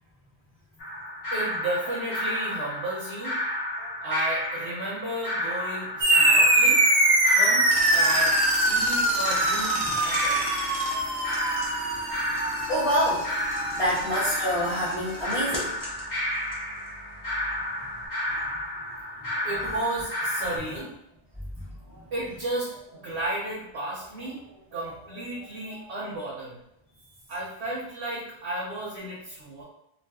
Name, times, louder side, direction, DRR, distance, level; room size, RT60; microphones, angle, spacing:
sound 1, 0.8-20.6, left 1 dB, 65° left, 1.1 m, -32 dB
voice 1, 1.3-3.4 3.8-6.9 7.3-10.5 10.9-11.5 19.4-20.9 21.9-26.6 27.3-29.6, right 1 dB, 75° right, -6 dB, 1.0 m, -33 dB
sound 2, 6.0-14.9, right 2 dB, 45° right, 0.4 m, -24 dB
sound 3, 7.7-18.1, equal, 25° left, 0.5 m, -38 dB
voice 2, 12.7-13.3 13.8-15.7 18.3-18.4 19.2-19.3 20.7-20.8, equal, 5° right, -14 dB, 0.9 m, -26 dB
2.5 x 2.3 x 3.4 m, 0.80 s
omnidirectional pair, 1.1 m